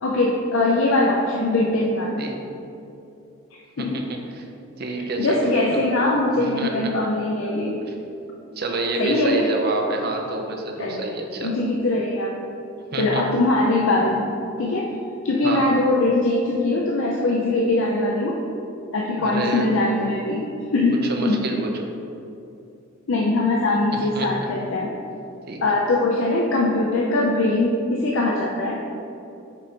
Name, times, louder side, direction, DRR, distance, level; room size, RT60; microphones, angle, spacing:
voice 1, 0.0-2.2 3.8-4.0 5.2-7.8 9.0-9.5 10.8-11.1 11.4-12.4 13.0-14.3 14.6-14.9 15.2-18.4 18.9-20.5 20.7-21.0 21.3-21.4 23.1-24.9 25.6-28.8, left 2 dB, 65° left, -2 dB, 0.5 m, -21 dB
voice 2, 2.2-2.6 3.8-4.4 4.8-5.8 6.3-6.7 8.6-11.6 12.9-13.2 15.4-15.7 19.2-19.7 20.9-21.8 23.9-24.3 25.5-25.6, right 2 dB, 45° right, 2 dB, 0.7 m, -28 dB
5.2 x 4.7 x 4.4 m, 2.8 s
head